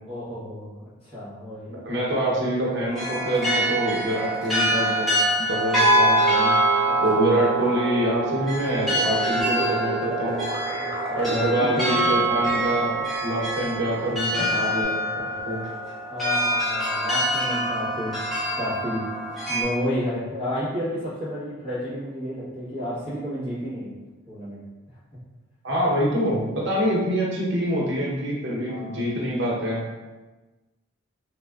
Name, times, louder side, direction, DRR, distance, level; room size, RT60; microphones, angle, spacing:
voice 1, 0.1-2.0 6.9-7.3 10.7-11.2 16.1-18.2 18.6-19.1 19.5-23.9 24.3-24.6 28.7-29.0, equal, 25° left, -11 dB, 1.0 m, -31 dB
voice 2, 1.7-5.1 5.4-6.5 7.0-10.4 11.2-12.9 13.2-14.9 15.2-15.6 25.6-29.8, right 1 dB, 55° right, -4 dB, 0.8 m, -25 dB
sound 1, 2.9-19.6, right 1 dB, ahead, 0.8 m, -25 dB
sound 2, 9.4-14.8, right 2 dB, 30° right, 0.5 m, -34 dB
3.3 x 2.5 x 2.3 m, 1.2 s
head